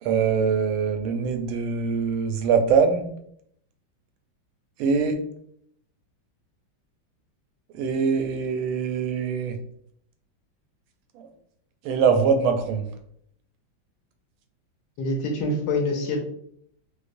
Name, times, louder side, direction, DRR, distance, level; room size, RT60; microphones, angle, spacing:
voice 1, 0.0-3.1 4.8-5.1 7.7-9.6 11.2-11.3 11.8-12.9, right 6 dB, 90° right, 7 dB, 1.4 m, -23 dB
voice 2, 15.0-16.2, left 2 dB, 70° left, 2 dB, 1.2 m, -25 dB
4.6 x 2.1 x 2.6 m, 0.67 s
omnidirectional pair, 2.2 m